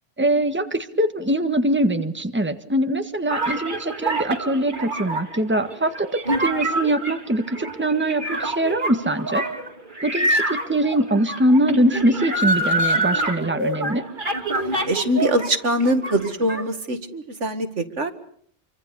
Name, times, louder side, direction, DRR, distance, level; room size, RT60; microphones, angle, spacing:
voice 1, 0.2-9.4 10.0-14.0, right 1 dB, 10° right, 8 dB, 1.6 m, -22 dB
sound 1, 3.3-15.5 15.8-16.6, right 1 dB, 40° right, 2.7 m, -26 dB
voice 2, 14.8-18.1, right 1 dB, 75° right, 9 dB, 2.3 m, -23 dB
28.5 x 24.5 x 7.0 m, 0.62 s
omnidirectional pair, 1.2 m